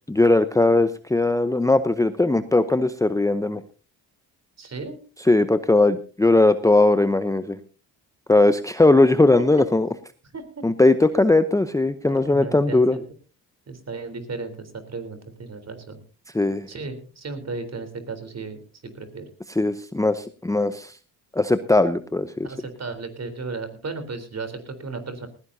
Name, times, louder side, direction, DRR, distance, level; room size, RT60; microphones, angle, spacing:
voice 1, 0.1-3.6 5.3-7.6 8.3-9.9 10.6-13.0 16.3-16.7 19.6-20.9 21.3-22.5, left 2 dB, 10° left, 11 dB, 0.8 m, -19 dB
voice 2, 4.6-5.0 10.3-10.4 12.1-13.0 13.7-16.0 16.7-19.3 22.4-25.3, right 3 dB, 40° right, 9 dB, 3.8 m, -35 dB
19.0 x 16.0 x 2.8 m, 0.35 s
cardioid pair, 70°, 39 cm